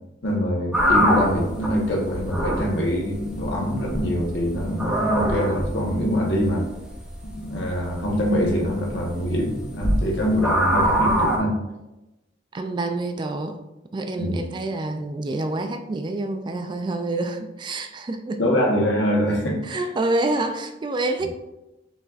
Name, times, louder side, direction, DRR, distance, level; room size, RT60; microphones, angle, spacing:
voice 1, 0.2-6.7 7.4-11.5 14.2-14.4 18.4-19.8, equal, 75° left, -1 dB, 1.0 m, -24 dB
sound 1, 0.7-11.4, equal, 5° right, 0.7 m, -25 dB
voice 2, 12.5-13.6 13.9-18.4 19.6-21.3, right 2 dB, 25° right, 7 dB, 0.3 m, -27 dB
5.4 x 3.7 x 2.4 m, 0.98 s
head